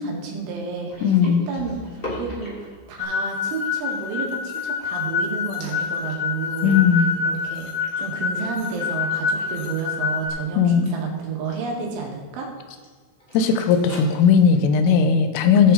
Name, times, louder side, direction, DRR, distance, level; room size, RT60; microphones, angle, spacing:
voice 1, 0.0-6.8 7.3-7.7 8.0-12.5, right 5 dB, 75° right, 0 dB, 4.2 m, -31 dB
sound 1, 0.9-5.2 5.6-9.7 9.9-10.2 10.8-11.7 12.7-12.9 13.2-15.0, left 1 dB, 30° left, 0.9 m, -41 dB
voice 2, 1.0-1.5 6.6-7.2 10.5-10.9 13.3-15.7, left 6 dB, 90° left, 8 dB, 3.4 m, -17 dB
sound 2, 3.0-10.3, left 6 dB, 65° left, 2.9 m, -26 dB
17.0 x 7.7 x 4.1 m, 1.4 s
omnidirectional pair, 5.6 m